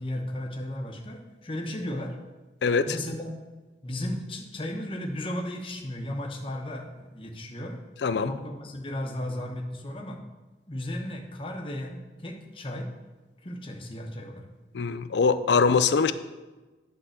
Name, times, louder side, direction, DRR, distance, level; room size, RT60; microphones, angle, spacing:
voice 1, 0.0-2.2 2.9-3.4 3.8-7.8 8.2-10.2 10.7-12.9 13.4-14.5, left 1 dB, 30° left, 2 dB, 1.0 m, -35 dB
voice 2, 8.0-8.3 14.7-16.1, left 5 dB, 85° left, 13 dB, 0.4 m, -22 dB
10.0 x 3.8 x 6.5 m, 1.2 s
head